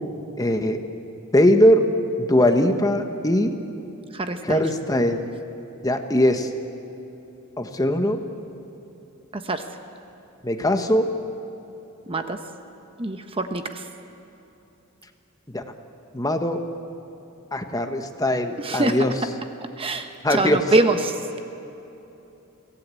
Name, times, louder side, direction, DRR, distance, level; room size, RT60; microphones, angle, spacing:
voice 1, 0.4-0.8 1.3-1.8 2.2-3.5 4.4-5.3 5.8-6.5 7.6-8.2 10.4-11.1 15.5-15.6 16.1-16.6 17.5-19.1 20.2-20.6, left 1 dB, 15° left, 6 dB, 1.2 m, -20 dB
voice 2, 4.1-4.6 9.3-9.6 12.1-12.4 13.0-13.9 18.6-19.0 19.8-21.2, right 2 dB, 25° right, 7 dB, 0.9 m, -24 dB
23.5 x 17.0 x 8.4 m, 3.0 s
head